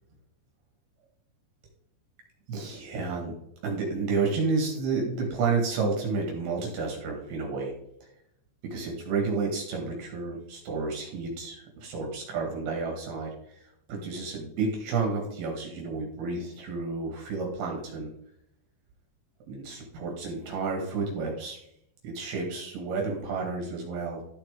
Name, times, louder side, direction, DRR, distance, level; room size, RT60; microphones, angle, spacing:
voice 1, 2.5-3.3 3.6-7.7 8.0-8.1 8.6-18.1 19.5-21.6 22.0-24.3, right 4 dB, 65° right, 0 dB, 3.3 m, -31 dB
12.5 x 7.2 x 3.5 m, 0.75 s
omnidirectional pair, 5.3 m